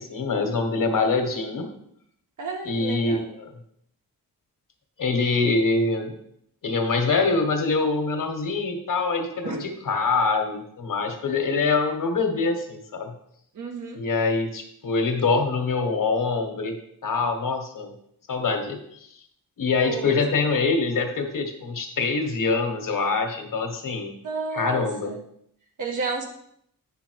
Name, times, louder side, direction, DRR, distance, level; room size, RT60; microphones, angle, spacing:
voice 1, 0.0-1.7 2.6-3.5 5.0-6.1 6.6-13.1 13.9-16.7 17.0-17.9 18.3-19.1 19.6-24.1 24.5-25.1, left 4 dB, 60° left, 5 dB, 1.4 m, -24 dB
voice 2, 2.4-3.3 9.4-9.6 13.5-14.0 19.8-20.2 24.2-25.2 25.8-26.3, right 4 dB, 55° right, 2 dB, 1.5 m, -32 dB
9.3 x 5.7 x 4.6 m, 0.70 s
wide cardioid pair, 170°, 36 cm